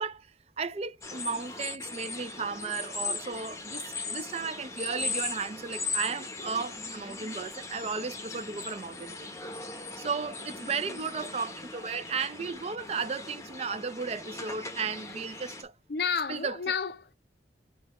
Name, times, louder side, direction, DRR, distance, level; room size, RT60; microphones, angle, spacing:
voice 1, 0.0-9.3 9.6-15.7 16.3-16.6, right 5 dB, 35° right, 0.4 m, -35 dB
sound 1, 1.0-15.6, left 3 dB, 15° left, 0.7 m, -39 dB
voice 2, 15.9-17.1, left 6 dB, 60° left, 0.5 m, -31 dB
5.4 x 2.3 x 4.1 m
head